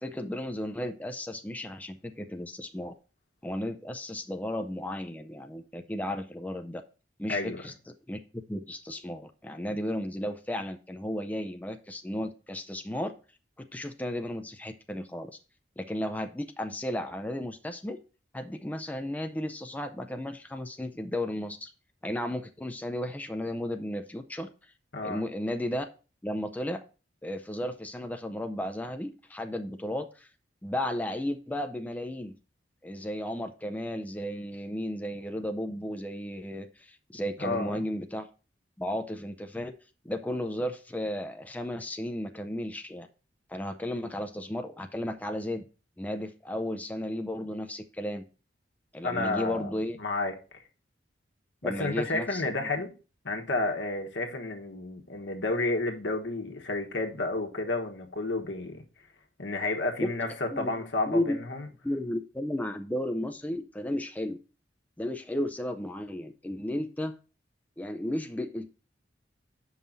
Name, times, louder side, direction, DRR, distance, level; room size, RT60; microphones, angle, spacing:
voice 1, 0.0-2.9 3.4-6.8 7.2-13.1 13.6-15.4 15.8-18.0 18.3-21.7 22.0-24.5 25.0-25.8 26.2-26.8 27.2-30.3 30.6-32.3 32.8-38.3 38.8-39.7 40.0-43.1 43.5-45.7 46.0-48.2 48.9-50.0 51.6-52.7 60.0-60.1 60.5-61.4 61.8-64.4 65.0-67.2 67.8-68.7, left 1 dB, 10° left, 0.4 m, -34 dB
voice 2, 7.3-7.6 24.9-25.2 37.4-37.8 49.0-49.7 50.0-50.6 51.6-52.9 53.2-58.8 59.4-61.6, left 2 dB, 75° left, 1.4 m, -31 dB
7.3 x 5.6 x 3.9 m
head